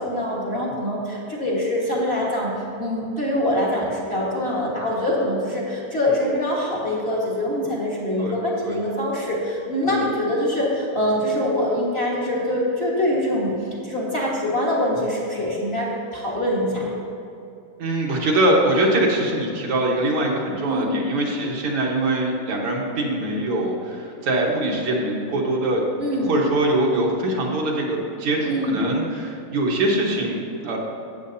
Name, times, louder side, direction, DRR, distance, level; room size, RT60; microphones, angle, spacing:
voice 1, 0.0-2.5 2.8-13.5 13.8-16.9 20.6-21.0 26.0-26.3 28.4-28.8, left 1 dB, 30° left, -6 dB, 1.6 m, -24 dB
voice 2, 17.8-25.8 26.2-30.8, right 1 dB, 85° right, -2 dB, 2.3 m, -23 dB
13.5 x 8.2 x 2.7 m, 2.7 s
omnidirectional pair, 2.4 m